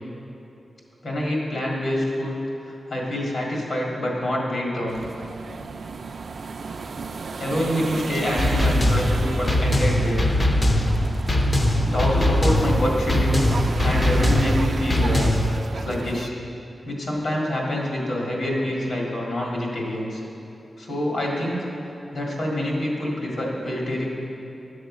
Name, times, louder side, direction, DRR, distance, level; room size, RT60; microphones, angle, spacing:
voice 1, 1.0-2.4 2.6-5.0 7.4-10.2 11.8-13.4 13.8-15.3 15.7-16.4 16.8-20.2 20.8-21.7 22.1-24.0, left 1 dB, 70° left, -3 dB, 1.9 m, -26 dB
sound 1, 4.9-16.3, right 4 dB, 55° right, 0.3 m, -34 dB
sound 2, 8.4-15.6, left 1 dB, 25° left, 0.5 m, -21 dB
11.0 x 6.4 x 4.9 m, 2.9 s
wide cardioid pair, 165°, 0 cm